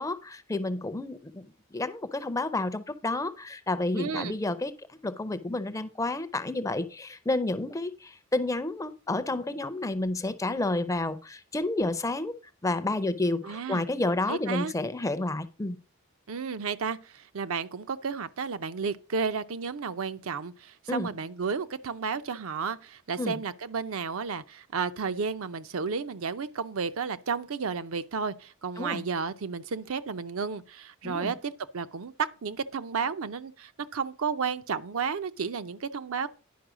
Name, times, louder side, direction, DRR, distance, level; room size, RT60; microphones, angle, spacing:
voice 1, 0.0-4.8 5.0-12.3 12.6-15.8 20.9-21.1 23.2-23.4 28.8-29.0 31.0-31.3, left 2 dB, 15° left, 0.5 m, -30 dB
voice 2, 3.9-4.3 13.4-13.8 14.3-14.7 16.3-36.3, right 5 dB, 70° right, 0.6 m, -32 dB
10.5 x 5.4 x 4.9 m
head